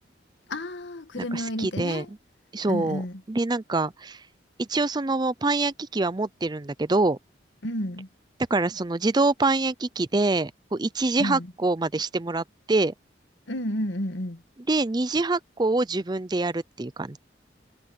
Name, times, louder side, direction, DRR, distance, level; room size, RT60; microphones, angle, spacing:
voice 1, 0.5-2.1 2.6-3.2 7.6-8.1 11.2-11.5 13.5-14.4, equal, 85° left, 1.9 m, -31 dB
voice 2, 1.2-2.1 2.5-3.0 3.3-4.2 4.6-7.2 8.5-12.9 14.7-17.2, right 2 dB, 25° right, 0.5 m, -25 dB
head